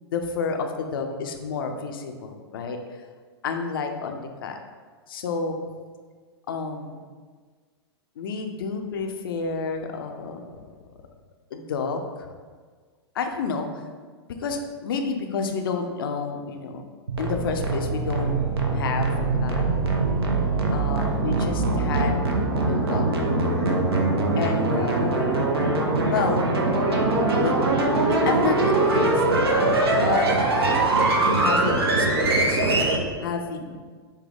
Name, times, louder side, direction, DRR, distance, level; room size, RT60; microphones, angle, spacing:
voice 1, 0.0-3.0 3.4-4.6 5.1-5.6 6.5-7.0 8.2-10.5 11.5-12.3 13.1-13.7 14.4-16.8 17.2-18.3 18.7-19.1 19.4-19.6 20.7-22.2 22.7-23.1 24.4-25.5 26.1-26.4 26.9-27.6 28.1-29.2 29.5-29.7 30.0-30.3 31.2-32.9 33.2-33.7, left 5 dB, 55° left, 5 dB, 0.5 m, -30 dB
sound 1, 17.1-33.0, right 2 dB, 65° right, 0.7 m, -22 dB
6.3 x 2.2 x 3.5 m, 1.5 s
figure-of-eight pair, 100°, 14 cm